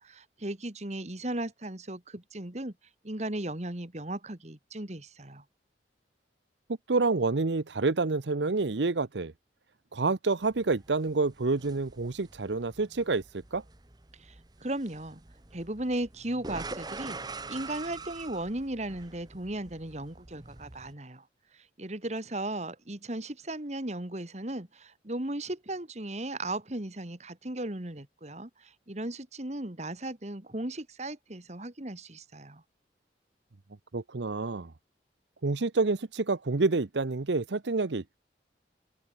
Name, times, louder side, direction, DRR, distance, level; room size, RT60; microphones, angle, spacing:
voice 1, 0.0-2.7 3.0-5.4 14.2-15.2 15.5-21.2 21.5-32.6, right 1 dB, 40° right, 2.0 m, -36 dB
voice 2, 6.9-9.3 9.9-13.2 13.5-13.6 33.9-34.7 35.4-38.2, right 3 dB, 80° right, 0.8 m, -28 dB
sound 1, 10.4-20.9, right 3 dB, 20° right, 1.1 m, -45 dB
open air
head